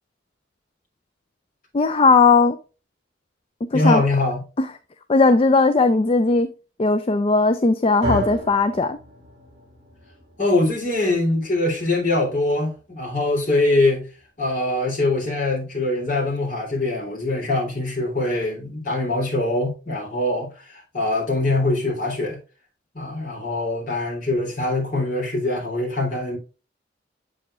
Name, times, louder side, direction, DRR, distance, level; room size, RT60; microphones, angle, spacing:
voice 1, 1.7-2.6 3.7-4.0 4.6-4.7 5.1-6.5 6.8-9.0, left 3 dB, 30° left, 0.4 m, -17 dB
voice 2, 3.7-4.4 10.4-14.1 14.4-22.4 22.9-26.4, left 2 dB, 45° left, 3.4 m, -23 dB
sound 1, 8.0-16.3, right 1 dB, 35° right, 2.3 m, -36 dB
7.6 x 6.7 x 2.5 m
head